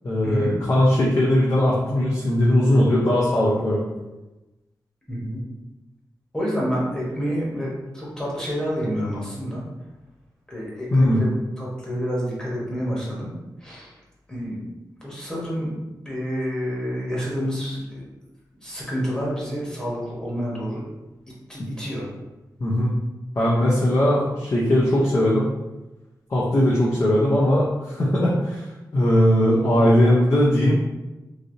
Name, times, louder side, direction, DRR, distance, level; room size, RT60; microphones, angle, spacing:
voice 1, 0.0-3.8 10.9-11.2 22.6-22.9 23.4-25.5 26.3-28.6 28.9-30.8, left 1 dB, 45° left, -6 dB, 0.6 m, -19 dB
voice 2, 5.1-5.4 6.3-9.6 10.5-11.3 11.6-13.3 13.6-13.9 14.3-14.6 15.0-15.7 16.0-18.0 18.6-20.8 21.5-22.1 29.5-29.8, equal, 10° left, -5 dB, 1.1 m, -28 dB
3.2 x 2.6 x 2.6 m, 1.1 s
wide cardioid pair, 95°, 8 cm